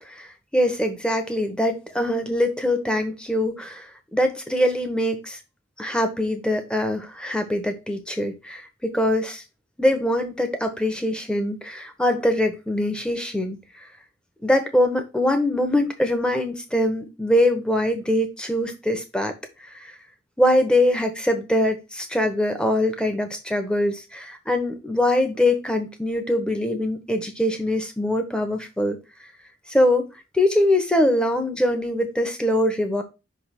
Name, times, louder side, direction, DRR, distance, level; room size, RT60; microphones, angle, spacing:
voice 1, 0.1-5.4 5.8-9.4 9.8-13.9 14.4-19.3 19.7-19.9 20.4-29.0 29.7-30.1 30.3-33.0, left 1 dB, 5° left, 0.9 m, -23 dB
5.7 x 3.4 x 5.8 m
head